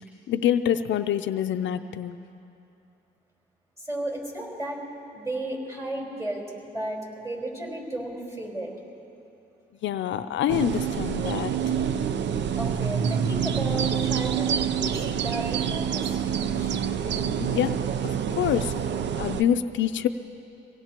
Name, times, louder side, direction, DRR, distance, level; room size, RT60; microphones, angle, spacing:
voice 1, 0.3-2.2 9.8-11.5 17.4-18.7 19.2-20.1, left 10 dB, 70° left, 9 dB, 0.5 m, -26 dB
voice 2, 3.8-4.8 5.1-6.5 6.7-8.7 12.5-17.3, right 1 dB, 15° right, -2 dB, 4.3 m, -34 dB
sound 1, 10.5-19.4, right 8 dB, 65° right, 0.6 m, -27 dB
24.5 x 17.5 x 2.9 m, 2.8 s
cardioid pair, 90°, 20 cm